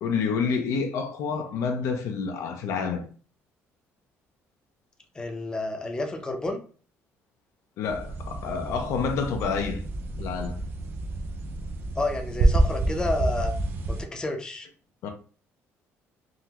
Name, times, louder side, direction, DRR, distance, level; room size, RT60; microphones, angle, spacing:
voice 1, 0.0-3.0 7.8-9.9 10.2-10.6 15.0-15.1, left 5 dB, 75° left, 0.5 m, -28 dB
voice 2, 5.1-6.6 11.9-13.5 13.9-14.7, left 2 dB, 15° left, 0.5 m, -30 dB
sound 1, 7.8-14.1, right 2 dB, 45° right, 0.5 m, -28 dB
3.6 x 2.1 x 2.8 m
cardioid pair, 145°, 5 cm